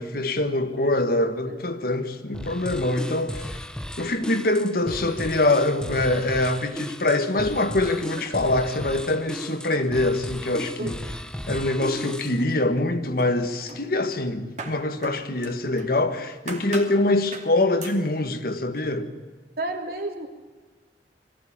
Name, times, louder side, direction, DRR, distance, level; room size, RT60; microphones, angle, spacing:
voice 1, 0.0-3.6 4.0-11.0 11.5-19.1, left 2 dB, 55° left, 1.6 m, -24 dB
sound 1, 2.3-12.4, equal, 5° left, 0.6 m, -35 dB
sound 2, 12.1-12.9 13.2-16.0 16.5-17.0 17.3-17.5 17.8-18.0, right 3 dB, 40° right, 2.8 m, -40 dB
voice 2, 19.6-20.3, right 2 dB, 55° right, 3.0 m, -31 dB
21.5 x 15.5 x 8.7 m
head